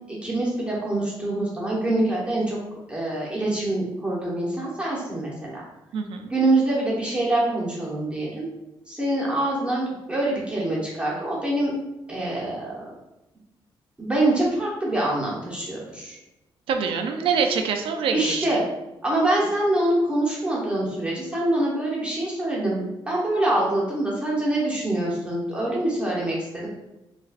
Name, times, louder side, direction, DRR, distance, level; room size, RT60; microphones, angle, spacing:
voice 1, 0.2-2.6 2.9-5.6 6.3-8.5 8.9-11.7 12.1-12.8 14.0-16.2 18.1-18.6 19.0-26.7, right 1 dB, 10° right, -6 dB, 1.0 m, -25 dB
voice 2, 5.9-6.3 16.7-18.5, right 6 dB, 80° right, 5 dB, 0.4 m, -25 dB
4.1 x 2.4 x 2.4 m, 0.95 s
cardioid pair, 90°, 9 cm